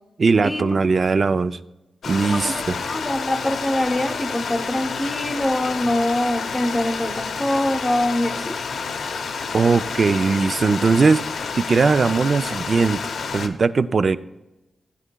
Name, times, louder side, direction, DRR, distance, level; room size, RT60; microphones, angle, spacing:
voice 1, 0.2-1.6 2.1-2.8 9.5-11.2 11.6-13.0 13.3-14.2, right 4 dB, 40° right, 13 dB, 0.3 m, -19 dB
Stream, 2.0-13.5, left 5 dB, 90° left, 0.7 m, -29 dB
voice 2, 2.2-8.6, left 1 dB, 10° left, 3 dB, 0.7 m, -24 dB
15.5 x 9.6 x 2.2 m, 0.99 s
wide cardioid pair, 155°, 0 cm